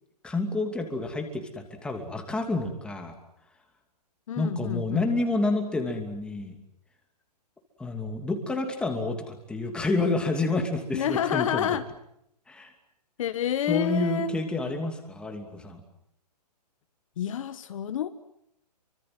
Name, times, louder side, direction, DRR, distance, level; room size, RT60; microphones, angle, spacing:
voice 1, 0.2-3.1 4.4-6.6 7.8-11.7 12.5-12.7 13.7-15.8, left 2 dB, 5° left, 4 dB, 2.8 m, -29 dB
voice 2, 4.3-5.1 10.9-11.8 13.2-14.3 17.2-18.1, left 10 dB, 50° left, 10 dB, 1.4 m, -28 dB
28.0 x 24.5 x 7.8 m, 0.76 s
hypercardioid pair, 160°, 21 cm